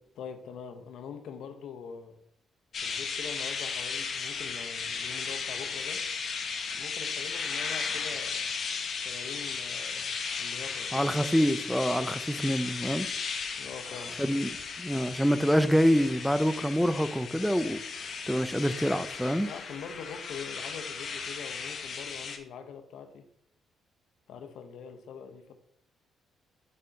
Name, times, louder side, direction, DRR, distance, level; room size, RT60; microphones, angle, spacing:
voice 1, 0.1-2.2 2.8-6.0 6.7-8.5 9.0-10.1 10.4-11.1 13.6-14.2 19.4-23.3 24.3-25.5, left 6 dB, 75° left, 0.8 m, -43 dB
sound 1, 2.7-22.4, left 5 dB, 55° left, 1.1 m, -36 dB
voice 2, 10.9-13.1 14.2-14.5 14.8-17.8 18.3-19.5, equal, ahead, 0.5 m, -26 dB
6.6 x 3.9 x 5.8 m
cardioid pair, 90°, 0 cm